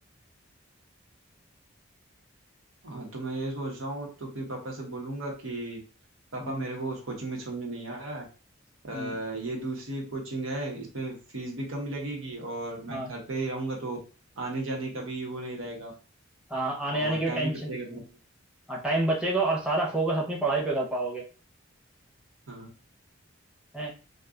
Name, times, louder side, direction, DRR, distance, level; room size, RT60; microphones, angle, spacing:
voice 1, 2.8-5.8 6.3-8.2 8.8-14.0 14.4-15.9 16.9-18.0 22.5-22.7, right 2 dB, 80° right, 0 dB, 1.0 m, -35 dB
voice 2, 16.5-18.0 18.7-21.2 23.7-23.9, right 2 dB, 5° right, -3 dB, 0.7 m, -28 dB
2.5 x 2.3 x 3.6 m, 0.34 s
head